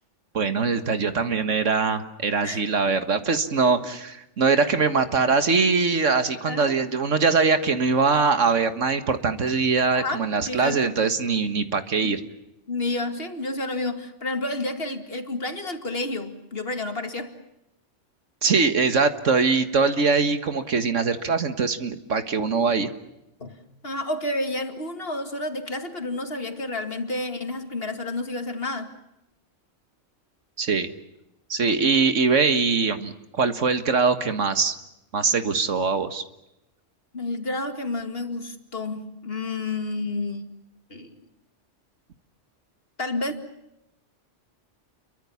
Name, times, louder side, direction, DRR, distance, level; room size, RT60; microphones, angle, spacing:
voice 1, 0.3-12.2 18.4-22.9 30.6-30.9 31.5-34.8 35.1-36.2, right 4 dB, 80° right, 2.0 m, -22 dB
voice 2, 6.4-6.7 9.9-11.0 12.0-12.2 12.7-17.4 23.4-28.9 37.1-40.5 40.9-41.2 43.0-43.3, left 2 dB, 50° left, 2.5 m, -30 dB
29.5 x 23.5 x 7.1 m
omnidirectional pair, 1.3 m